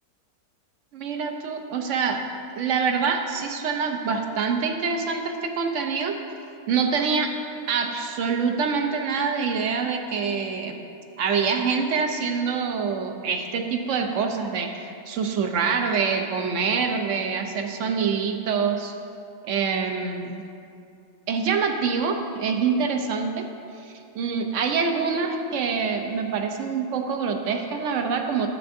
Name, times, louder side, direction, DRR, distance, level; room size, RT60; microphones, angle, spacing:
voice 1, 0.9-2.2 2.6-6.2 6.7-7.3 7.7-10.8 11.2-18.9 19.4-20.4 21.3-23.4 23.8-28.5, right 5 dB, 65° right, 4 dB, 0.8 m, -25 dB
11.0 x 8.1 x 2.6 m, 2.5 s
omnidirectional pair, 1.7 m